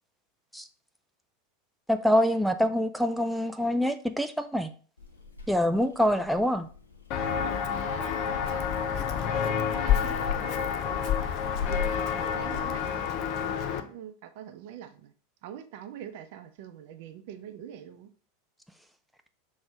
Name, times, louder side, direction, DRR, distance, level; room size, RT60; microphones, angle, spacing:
voice 1, 1.9-4.7 5.5-6.7, equal, ahead, 0.4 m, -25 dB
Purr / Meow, 5.0-13.8, left 6 dB, 80° left, 0.9 m, -41 dB
Walk footsteps, 7.1-13.8, left 8 dB, 45° left, 0.6 m, -29 dB
voice 2, 8.3-11.1 11.6-15.1 15.4-18.1, right 10 dB, 55° right, 0.7 m, -45 dB
6.1 x 3.2 x 4.9 m
figure-of-eight pair, 85°, 0 cm